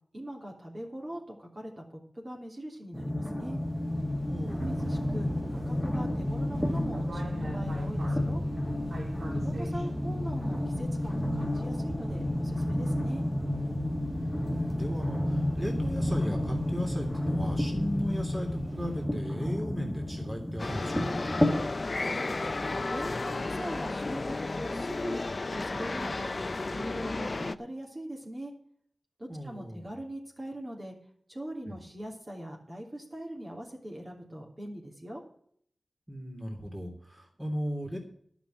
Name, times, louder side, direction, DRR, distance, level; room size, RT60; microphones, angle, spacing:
voice 1, 0.1-3.6 4.4-8.4 9.3-13.2 22.0-22.4 22.9-26.3 26.7-28.5 29.2-30.9 31.3-35.2, right 1 dB, 35° right, -1 dB, 3.1 m, -41 dB
sound 1, 2.9-21.6, left 1 dB, 5° left, 1.9 m, -31 dB
sound 2, 3.5-19.1, right 1 dB, 80° right, 2.4 m, -44 dB
voice 2, 4.3-4.9 9.1-9.9 14.2-21.2 29.3-29.9 31.7-31.8 36.1-38.0, equal, 15° right, 1 dB, 3.0 m, -37 dB
sound 3, 20.6-27.5, left 3 dB, 50° left, 0.5 m, -33 dB
11.5 x 6.1 x 9.1 m, 0.64 s
wide cardioid pair, 70°, 0 cm